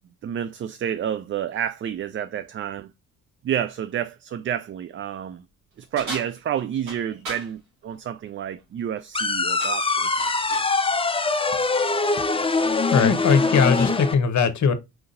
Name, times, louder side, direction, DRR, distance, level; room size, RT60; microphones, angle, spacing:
voice 1, 0.2-2.9 3.4-5.4 5.8-10.1, right 9 dB, 35° right, 0.4 m, -29 dB
sound 1, 6.0-7.5 9.0-9.3 9.6-10.8, right 2 dB, 80° right, 2.5 m, -37 dB
sound 2, 9.1-14.1, left 3 dB, 15° left, 0.7 m, -23 dB
voice 2, 12.9-14.7, left 6 dB, 50° left, 0.9 m, -20 dB
4.5 x 3.8 x 2.5 m
hypercardioid pair, 50°, 36 cm